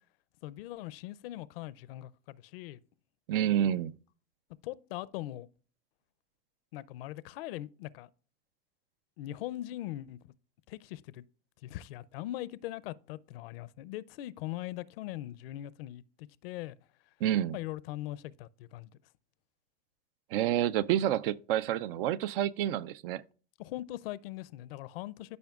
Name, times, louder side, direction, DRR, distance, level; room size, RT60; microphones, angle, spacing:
voice 1, 0.4-2.8 4.6-5.5 6.7-8.1 9.2-10.2 10.7-11.2 11.6-16.8 17.5-18.9 23.6-25.4, left 15 dB, 65° left, 0.6 m, -41 dB
voice 2, 3.3-3.9 17.2-17.6 20.3-23.2, right 11 dB, 60° right, 0.5 m, -29 dB
13.5 x 5.1 x 2.4 m
hypercardioid pair, 120°, 31 cm